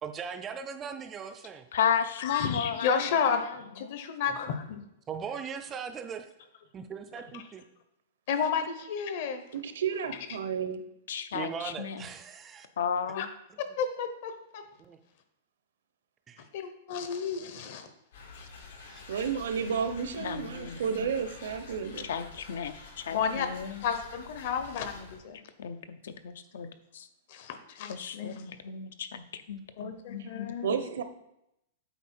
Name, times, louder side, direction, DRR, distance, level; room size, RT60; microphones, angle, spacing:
voice 1, 0.0-1.7 3.0-3.1 4.3-4.4 5.1-6.3 6.7-7.6 11.3-12.7 14.8-15.0 16.3-16.4 18.9-19.1, right 6 dB, 15° right, 7 dB, 0.3 m, -39 dB
voice 2, 1.7-3.5 3.8-4.0 11.1-12.1 12.8-13.3 20.2-21.1 22.0-23.8 25.6-26.7 26.9-27.1 27.9-30.8, left 7 dB, 70° left, 11 dB, 0.6 m, -34 dB
voice 3, 2.2-4.8 7.3-7.4 8.3-9.4 13.1-13.3 13.8-14.6 16.5-17.9 18.4-18.5 23.1-23.5 23.8-25.4 27.3-28.4 29.8-30.7, left 6 dB, 40° left, 8 dB, 0.8 m, -32 dB
voice 4, 9.5-10.8 19.1-22.1 30.2-30.3 30.6-31.0, right 6 dB, 75° right, 9 dB, 0.8 m, -32 dB
sound 1, 18.1-25.2, left 4 dB, 85° left, 2.1 m, -48 dB
8.2 x 4.5 x 4.3 m, 0.83 s
supercardioid pair, 180°, 0 cm